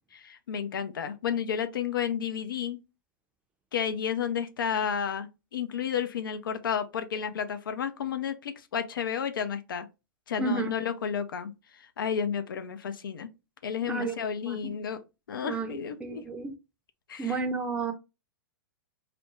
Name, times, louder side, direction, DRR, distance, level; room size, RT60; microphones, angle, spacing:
voice 1, 0.1-2.8 3.7-9.9 10.3-13.3 13.6-15.0 15.3-16.2 17.1-17.4, left 7 dB, 75° left, 0.5 m, -32 dB
voice 2, 10.4-10.7 13.9-14.1 14.5-14.8 15.4-15.7 16.0-16.5 17.2-17.9, right 4 dB, 10° right, 0.5 m, -31 dB
2.5 x 2.1 x 3.0 m
hypercardioid pair, 115°, 11 cm